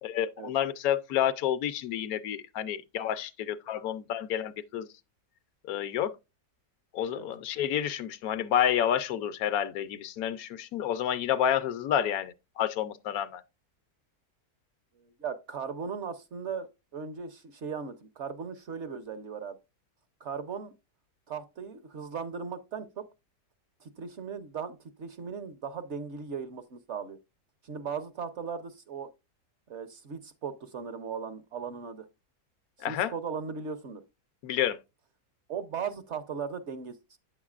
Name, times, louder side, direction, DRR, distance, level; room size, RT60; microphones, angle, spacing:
voice 1, 0.0-4.9 5.6-6.1 6.9-13.4 32.8-33.1 34.4-34.8, left 10 dB, 75° left, 1.0 m, -29 dB
voice 2, 15.0-19.6 20.2-20.7 21.3-23.0 23.8-27.2 27.6-29.1 29.7-32.1 32.8-34.0 35.5-37.2, right 6 dB, 55° right, 0.9 m, -38 dB
9.0 x 7.2 x 2.4 m
omnidirectional pair, 1.7 m